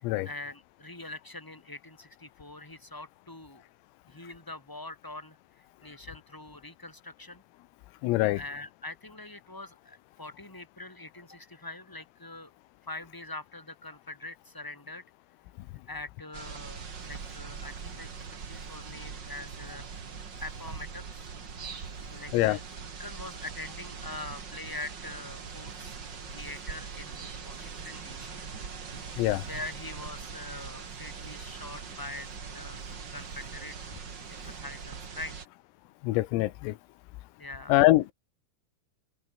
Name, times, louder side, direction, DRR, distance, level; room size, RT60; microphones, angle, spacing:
voice 1, 0.0-3.6 4.1-7.4 8.3-12.5 12.8-15.0 15.9-19.8 20.4-21.3 21.9-26.0 26.3-28.4 29.4-32.3 32.5-32.8 33.1-33.9 34.3-35.3 37.4-37.9, left 2 dB, 5° left, 3.4 m, -43 dB
voice 2, 8.0-8.4 22.3-22.6 29.2-29.4 36.0-36.8 37.7-38.1, left 18 dB, 90° left, 3.8 m, -24 dB
sound 1, 16.3-35.4, right 6 dB, 70° right, 1.0 m, -42 dB
omnidirectional pair, 5.9 m